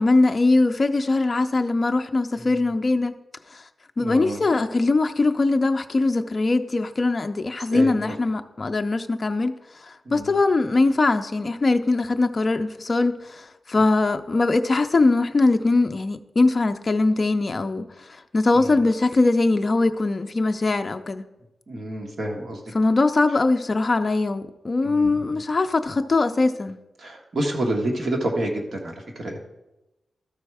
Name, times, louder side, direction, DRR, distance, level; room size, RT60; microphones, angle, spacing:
voice 1, 0.0-3.1 3.5-3.6 4.0-9.5 9.8-17.9 18.3-21.2 22.7-26.8, left 3 dB, 30° left, 0.4 m, -21 dB
voice 2, 2.4-2.7 4.0-4.4 7.7-8.1 10.0-10.3 18.5-18.9 21.7-22.6 24.8-25.4 27.0-29.4, right 1 dB, 50° right, 1.4 m, -29 dB
13.0 x 4.4 x 4.8 m
wide cardioid pair, 150°, 0 cm